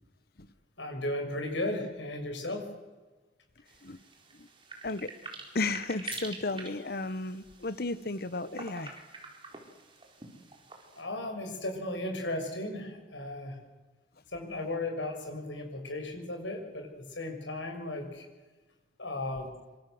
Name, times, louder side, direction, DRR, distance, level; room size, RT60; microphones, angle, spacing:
voice 1, 0.8-2.6 10.9-13.6 14.3-18.3 19.0-19.5, left 1 dB, 90° left, 3 dB, 6.5 m, -35 dB
sound 1, 3.7-11.0, right 4 dB, 30° right, 4.5 m, -46 dB
voice 2, 5.5-8.9, left 3 dB, 55° left, 15 dB, 1.2 m, -33 dB
26.0 x 25.5 x 7.9 m, 1.3 s
head